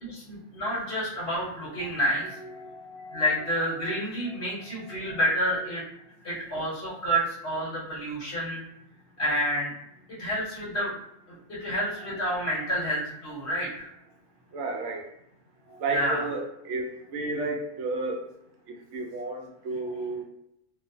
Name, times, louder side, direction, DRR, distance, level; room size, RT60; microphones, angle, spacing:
voice 1, 0.0-2.4 3.1-5.8 6.2-8.6 9.2-9.7 10.2-10.9 11.3-13.9 15.9-16.2, equal, 60° left, -6 dB, 1.0 m, -29 dB
voice 2, 2.4-3.3 3.8-3.9 4.8-5.2 12.5-12.8 14.5-15.0 15.7-18.2 18.7-20.2, right 3 dB, 70° right, 1 dB, 0.9 m, -33 dB
2.4 x 2.2 x 2.6 m, 0.80 s
omnidirectional pair, 1.3 m